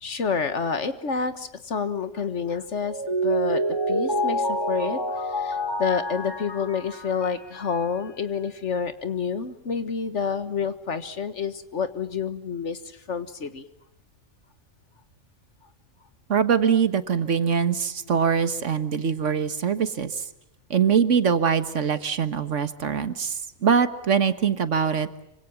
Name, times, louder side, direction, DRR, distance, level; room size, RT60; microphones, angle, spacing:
voice 1, 0.0-3.6 3.9-13.7, left 6 dB, 70° left, 11 dB, 1.8 m, -29 dB
Mallet percussion, 2.8-7.8, right 1 dB, 20° left, 3.2 m, -27 dB
voice 2, 16.3-20.3 20.7-25.1, right 7 dB, 75° right, 12 dB, 1.7 m, -23 dB
25.5 x 25.5 x 7.3 m, 0.87 s
omnidirectional pair, 1.3 m